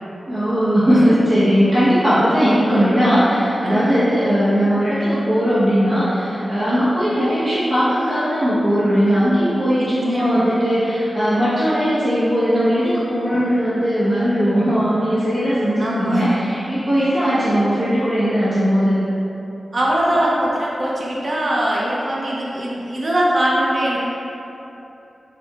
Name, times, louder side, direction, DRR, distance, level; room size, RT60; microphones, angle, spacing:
voice 1, 0.3-19.0, equal, 55° right, -14 dB, 1.0 m, -18 dB
voice 2, 3.6-4.0 9.7-10.5 15.8-16.4 19.7-24.0, right 1 dB, 40° right, -5 dB, 0.5 m, -21 dB
4.5 x 4.3 x 2.3 m, 3.0 s
wide cardioid pair, 140°, 0 cm